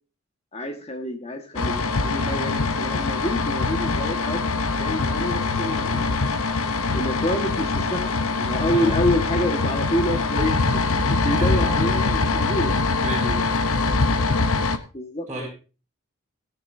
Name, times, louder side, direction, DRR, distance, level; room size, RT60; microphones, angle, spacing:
voice 1, 0.5-6.1 6.9-12.8 14.9-15.5, equal, 30° left, 4 dB, 1.6 m, -28 dB
sound 1, 1.6-14.8, left 3 dB, 75° left, 0.9 m, -23 dB
voice 2, 13.0-14.0 15.3-15.5, right 1 dB, 10° right, -7 dB, 3.4 m, -33 dB
17.0 x 10.0 x 2.7 m, 0.33 s
head